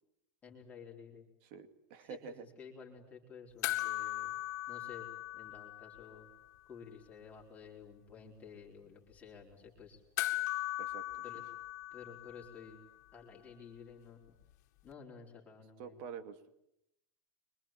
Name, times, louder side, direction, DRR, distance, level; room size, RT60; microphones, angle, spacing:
voice 1, 0.4-1.3 2.0-4.4 4.7-5.1 5.3-6.3 6.7-10.0 11.2-11.4 11.9-12.8 13.1-14.2 14.8-16.0, left 6 dB, 15° left, -2 dB, 4.3 m, -52 dB
voice 2, 1.4-2.4 10.8-11.2 15.8-16.5, right 7 dB, 45° right, 9 dB, 2.4 m, -47 dB
sound 1, 3.6-6.3 6.5-6.6 10.2-12.8 14.9-15.0, left 17 dB, 65° left, 2.0 m, -38 dB
25.5 x 23.5 x 9.0 m, 0.80 s
supercardioid pair, 170°, 10 cm